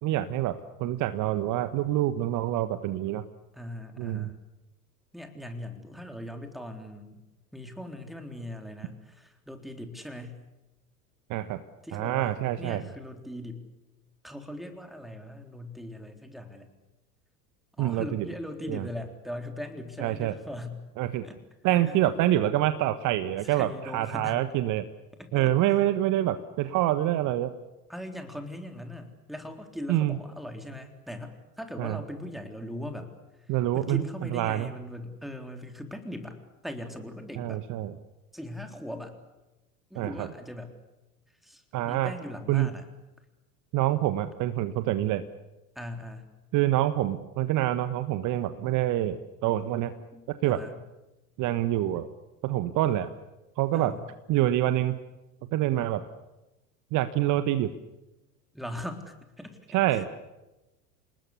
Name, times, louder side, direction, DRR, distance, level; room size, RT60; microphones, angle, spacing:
voice 1, 0.0-3.2 4.0-4.3 11.3-11.6 11.9-12.8 17.8-18.3 18.7-18.9 20.0-20.3 21.0-21.3 21.6-24.8 25.3-27.5 29.9-30.2 31.8-32.0 33.5-34.0 34.3-34.7 37.4-37.9 40.0-40.3 41.7-42.1 42.5-42.7 43.7-45.2 46.5-49.9 50.3-50.6 51.4-52.1 52.4-53.1 53.6-53.9 54.3-55.0 55.5-56.0 56.9-57.7 59.7-60.1, right 14 dB, 40° right, 11 dB, 1.4 m, -26 dB
voice 2, 3.5-4.4 5.1-7.2 7.5-10.4 11.8-13.6 14.2-16.7 17.8-20.9 21.2-21.4 21.8-21.9 23.4-24.5 25.2-25.5 27.9-37.7 38.3-39.2 39.9-40.7 41.4-42.8 45.8-46.3 50.1-50.8 53.7-54.1 58.5-60.1, left 1 dB, ahead, 5 dB, 3.7 m, -40 dB
28.5 x 20.0 x 8.4 m, 1.0 s
figure-of-eight pair, 80°, 46 cm